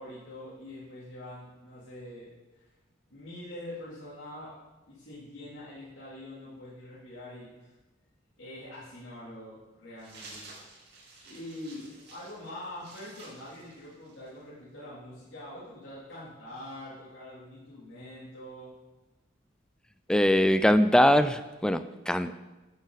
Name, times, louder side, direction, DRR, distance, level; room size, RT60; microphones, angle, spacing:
voice 1, 0.0-2.7 3.1-4.6 4.9-7.7 8.4-10.5 11.2-18.7, left 1 dB, 70° left, -10 dB, 3.4 m, -44 dB
sound 1, 10.0-14.4, right 3 dB, 55° right, 3.0 m, -51 dB
voice 2, 20.1-22.3, equal, 5° left, 11 dB, 0.3 m, -22 dB
13.0 x 8.0 x 4.1 m, 1.1 s
head